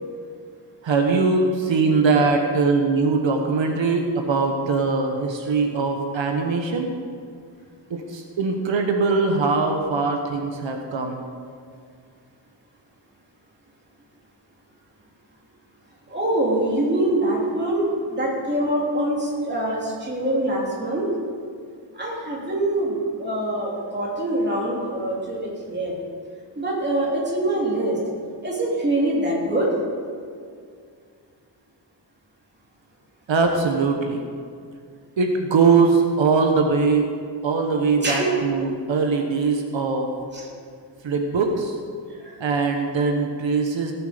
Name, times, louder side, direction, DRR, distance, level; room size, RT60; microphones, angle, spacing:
voice 1, 0.8-6.9 7.9-11.2 33.3-34.2 35.2-37.1 37.4-40.1 41.0-41.8 42.4-43.9, right 4 dB, 85° right, 3 dB, 1.2 m, -21 dB
voice 2, 16.1-21.1 21.9-25.9 26.6-28.0 28.4-29.7 38.0-38.3 40.3-40.5 42.2-42.4, right 1 dB, 25° right, -4 dB, 3.0 m, -24 dB
17.5 x 7.8 x 5.1 m, 2.2 s
wide cardioid pair, 150°, 45 cm